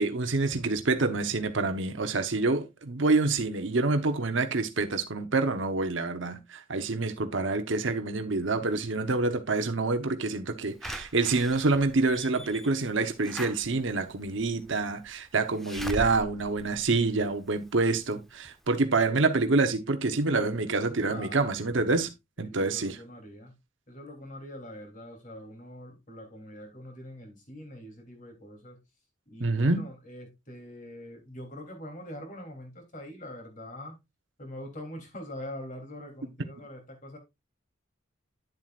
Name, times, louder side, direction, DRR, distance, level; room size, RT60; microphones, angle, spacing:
voice 1, 0.0-22.1 22.4-23.0 29.4-29.8, right 3 dB, 70° right, 0.9 m, -27 dB
Slam / Alarm, 10.8-17.6 18.1-18.2 18.4-18.5, equal, ahead, 0.7 m, -41 dB
voice 2, 21.1-21.5 22.4-23.5 23.9-28.8 29.3-34.0 34.4-37.2, left 1 dB, 40° left, 3.1 m, -43 dB
10.5 x 7.6 x 2.4 m
head